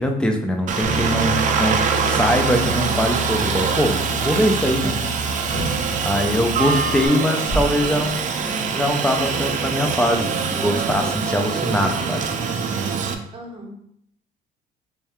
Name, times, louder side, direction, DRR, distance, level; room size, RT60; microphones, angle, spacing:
voice 1, 0.0-5.0 6.0-12.2, equal, 5° left, 3 dB, 0.5 m, -22 dB
Aircraft, 0.7-13.1, right 6 dB, 50° right, 0.4 m, -24 dB
Bass guitar, 0.8-7.1, equal, 75° left, 1.3 m, -29 dB
voice 2, 4.7-5.1 5.5-5.6 6.1-6.3 13.3-13.7, equal, 30° right, 0 dB, 0.9 m, -39 dB
sound 1, 5.5-6.0 6.6-6.7 7.2-8.6 9.2-9.4 10.1-11.2, right 1 dB, 40° left, 1.3 m, -31 dB
3.3 x 2.7 x 3.5 m, 0.70 s
cardioid pair, 110°, 17 cm